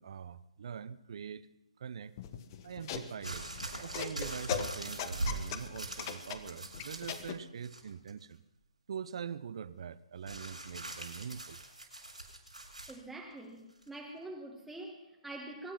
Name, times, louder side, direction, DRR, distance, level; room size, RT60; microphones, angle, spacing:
voice 1, 0.0-1.5 1.8-2.1 2.6-3.5 3.8-8.4 8.9-11.6, right 7 dB, 55° right, 16 dB, 0.8 m, -43 dB
sound 1, 2.2-7.4, left 9 dB, 35° left, 1.2 m, -40 dB
sound 2, 3.2-7.3 7.6-8.2 10.3-13.0 13.8-13.9, right 2 dB, 90° right, 6.8 m, -41 dB
voice 2, 12.9-15.7, right 2 dB, 5° right, 0 dB, 1.3 m, -45 dB
23.0 x 10.0 x 5.9 m, 0.92 s
figure-of-eight pair, 135°, 4 cm